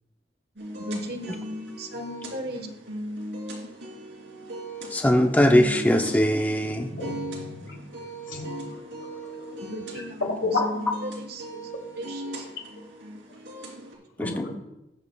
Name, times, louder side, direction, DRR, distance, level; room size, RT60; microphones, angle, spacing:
sound 1, 0.6-14.0, right 1 dB, 85° right, 3.0 m, -38 dB
voice 1, 0.7-2.7 9.6-11.6 12.0-12.8, equal, 60° right, 5 dB, 1.3 m, -37 dB
voice 2, 4.9-6.9 14.2-14.4, equal, 10° left, 4 dB, 0.6 m, -21 dB
voice 3, 6.6-7.8 8.2-8.7 10.2-10.6 14.2-14.5, left 3 dB, 85° left, 0 dB, 2.8 m, -30 dB
19.0 x 7.5 x 2.3 m, 0.90 s
head